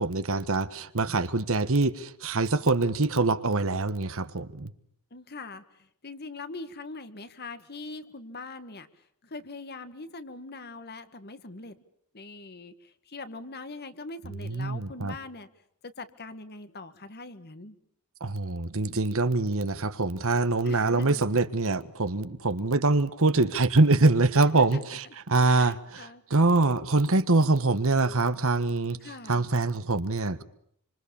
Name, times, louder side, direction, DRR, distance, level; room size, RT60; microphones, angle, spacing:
voice 1, 0.0-4.7 14.4-15.1 18.2-29.0 29.3-30.4, right 3 dB, 65° right, 1.4 m, -24 dB
voice 2, 5.1-11.8 12.1-15.5 15.8-17.8 20.7-21.2 24.6-24.8 25.4-26.2 28.9-29.5, left 3 dB, 45° left, 1.8 m, -42 dB
27.0 x 26.0 x 7.1 m
head